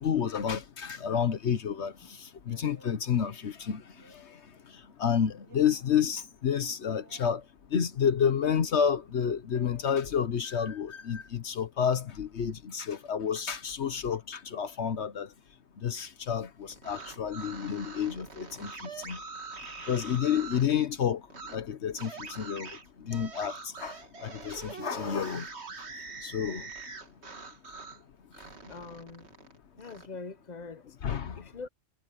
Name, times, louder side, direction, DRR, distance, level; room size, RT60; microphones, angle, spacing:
voice 1, 0.0-1.9 2.2-3.8 5.0-7.4 7.7-15.3 15.8-19.2 19.9-21.2 21.5-22.7 23.0-24.0 24.2-25.5 26.2-26.6 31.0-31.4, left 8 dB, 75° left, 1.3 m, -30 dB
sound 1, 2.5-3.0 3.9-4.6 5.5-5.9 6.9-7.4 8.3-8.8 9.5-9.9, equal, 85° right, 4.2 m, -56 dB
sound 2, 16.7-20.7 21.3-21.6 22.0-28.0 28.3-30.1, right 4 dB, 70° right, 2.3 m, -44 dB
voice 2, 28.7-29.3 29.8-30.8 31.4-31.7, left 4 dB, 40° left, 0.9 m, -43 dB
omnidirectional pair, 1.2 m